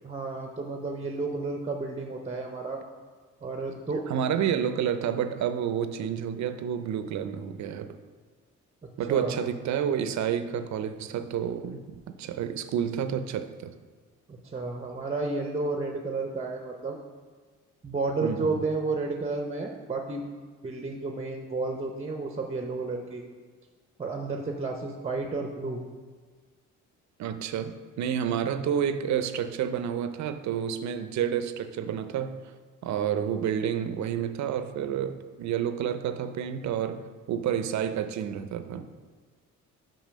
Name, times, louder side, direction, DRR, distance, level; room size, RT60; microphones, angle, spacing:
voice 1, 0.0-2.8 3.4-4.3 9.1-9.4 14.3-17.0 17.8-20.2 20.6-23.2 24.0-25.8, right 3 dB, 20° right, 3 dB, 0.6 m, -32 dB
voice 2, 4.1-8.0 9.0-13.7 18.2-18.6 27.2-32.4 32.8-38.9, right 8 dB, 65° right, 10 dB, 0.5 m, -29 dB
5.6 x 5.5 x 5.0 m, 1.5 s
cardioid pair, 90°, 30 cm